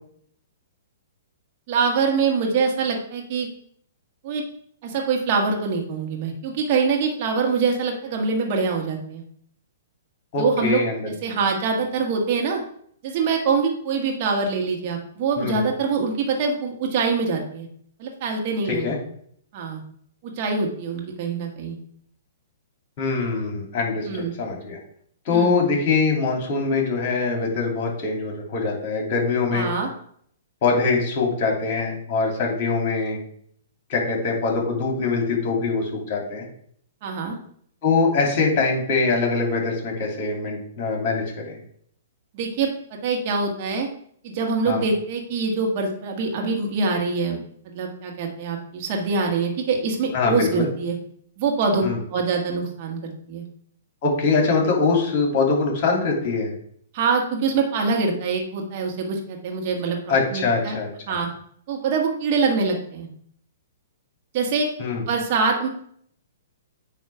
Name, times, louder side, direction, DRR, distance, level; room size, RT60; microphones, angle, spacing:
voice 1, 1.7-3.5 4.2-4.4 4.8-9.2 10.4-10.8 11.1-12.6 13.0-17.7 18.0-19.0 19.5-19.8 20.2-21.8 24.1-24.3 25.3-25.6 29.5-29.9 37.0-37.4 42.3-43.9 44.2-47.4 47.7-51.0 51.4-51.8 52.1-53.4 56.9-60.8 61.1-61.3 61.7-63.1 64.3-64.7 65.1-65.7, right 4 dB, 45° right, 1 dB, 1.6 m, -24 dB
voice 2, 10.3-11.1 11.3-11.4 15.4-15.6 18.7-19.0 23.0-24.8 25.2-29.7 30.6-33.2 33.9-36.5 37.8-41.6 44.7-44.8 50.1-50.7 51.8-52.0 54.0-56.5 60.1-61.2 64.8-65.0, left 4 dB, 40° left, 0 dB, 2.8 m, -23 dB
8.9 x 3.0 x 5.8 m, 0.65 s
figure-of-eight pair, 120°, 0 cm